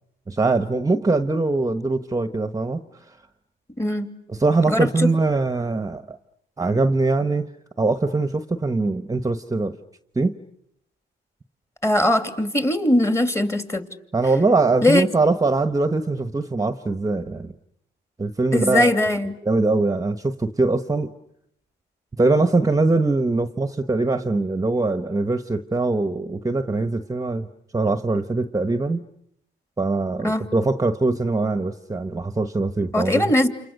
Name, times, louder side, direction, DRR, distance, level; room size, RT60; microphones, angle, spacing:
voice 1, 0.3-2.8 4.3-6.2 6.6-7.5 7.8-9.8 10.2-10.3 14.1-17.5 18.2-18.9 19.4-21.1 22.2-27.5 27.7-29.0 29.8-33.3, right 3 dB, 15° right, 10 dB, 1.2 m, -22 dB
voice 2, 3.8-4.1 4.7-5.1 11.8-13.8 14.8-15.0 18.5-19.4 30.2-30.5 32.9-33.5, left 1 dB, 15° left, 8 dB, 2.7 m, -20 dB
30.0 x 28.5 x 6.6 m, 0.74 s
cardioid pair, 90°, 20 cm